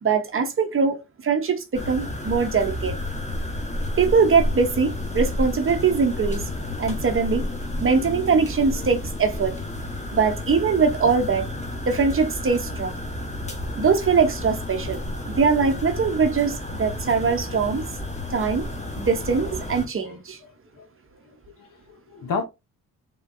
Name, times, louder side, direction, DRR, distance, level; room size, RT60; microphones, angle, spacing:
voice 1, 0.0-1.0 1.2-3.0 4.0-6.4 6.8-7.4 7.8-9.5 10.1-11.5 11.9-13.0 13.8-15.0 15.4-17.9 18.3-18.7 19.0-20.4, right 5 dB, 35° right, 0.8 m, -22 dB
sound 1, 1.7-19.9, left 1 dB, 20° left, 1.1 m, -31 dB
voice 2, 21.6-22.4, left 5 dB, 65° left, 0.8 m, -33 dB
3.4 x 2.2 x 2.5 m
cardioid pair, 70°, 35 cm